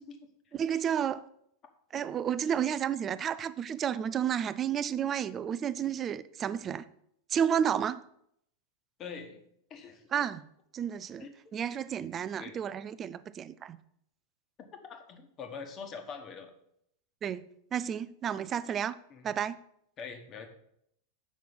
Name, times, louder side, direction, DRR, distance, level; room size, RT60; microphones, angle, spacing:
voice 1, 0.5-1.2 1.9-6.8 7.3-8.0 10.1-10.4 10.7-11.3 11.5-13.8 17.2-19.0 19.2-19.6, right 8 dB, 25° right, 0.4 m, -31 dB
voice 2, 9.0-9.4 9.7-10.0 11.2-11.3 12.4-12.5 14.6-16.5 19.1-19.3 20.0-20.5, left 5 dB, 30° left, 1.3 m, -43 dB
7.3 x 5.9 x 5.2 m
figure-of-eight pair, 90°, 0 cm